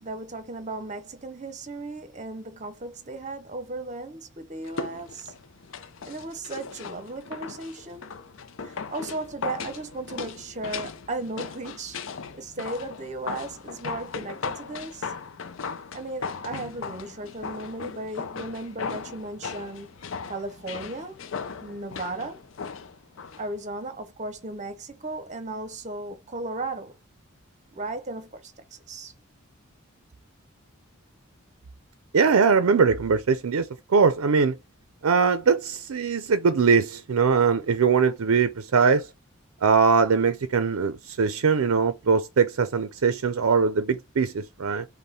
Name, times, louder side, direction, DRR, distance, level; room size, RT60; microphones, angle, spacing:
voice 1, 0.0-5.3 6.1-8.1 8.6-12.0 12.3-15.1 15.9-21.2 21.6-22.4 23.4-26.9 27.7-29.1, right 2 dB, 35° right, 0.7 m, -36 dB
sound 1, 4.6-23.5 23.8-23.9, left 5 dB, 65° left, 0.5 m, -37 dB
voice 2, 32.1-34.6 35.0-39.1 39.6-44.9, right 5 dB, 80° right, 0.5 m, -21 dB
5.4 x 2.2 x 4.2 m
head